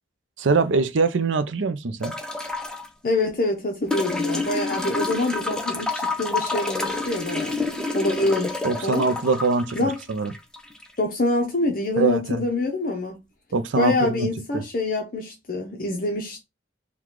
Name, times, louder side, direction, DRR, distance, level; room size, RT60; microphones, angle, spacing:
voice 1, 0.4-2.1 8.6-10.3 12.0-12.4 13.5-14.3 14.5-14.6, right 4 dB, 90° right, 0.6 m, -23 dB
sound 1, 2.0-2.9 3.9-10.9 12.3-12.4, left 3 dB, 5° left, 0.6 m, -29 dB
voice 2, 3.0-9.0 9.7-10.0 11.0-13.2 13.8-16.4, left 2 dB, 50° left, 0.7 m, -25 dB
4.7 x 2.3 x 3.7 m
head